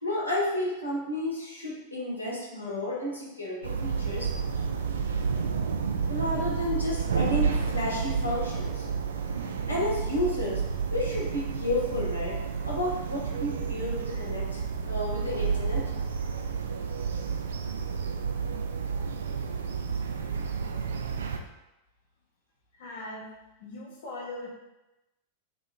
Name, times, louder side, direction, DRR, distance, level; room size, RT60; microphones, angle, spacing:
voice 1, 0.0-4.6 5.4-5.6 6.1-8.9 9.7-10.6 10.9-12.4 12.6-15.9, left 1 dB, 80° left, -5 dB, 1.3 m, -32 dB
sound 1, 3.6-21.4, right 5 dB, 65° right, 0.4 m, -30 dB
voice 2, 22.8-23.3 23.6-24.5, left 2 dB, 60° left, -4 dB, 1.2 m, -39 dB
6.7 x 3.0 x 2.3 m, 0.98 s
figure-of-eight pair, 90°, 0 cm